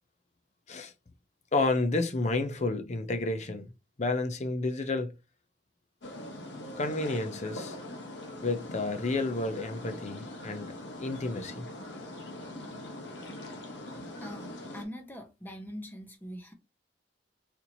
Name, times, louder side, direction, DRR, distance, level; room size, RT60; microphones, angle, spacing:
voice 1, 1.5-3.7 4.0-5.1 6.8-7.8 8.4-11.7, left 2 dB, 40° left, 0.6 m, -31 dB
sound 1, 6.0-14.9, left 1 dB, 75° left, 1.0 m, -42 dB
voice 2, 14.2-16.5, equal, 10° left, 0.9 m, -43 dB
4.3 x 2.8 x 2.7 m
head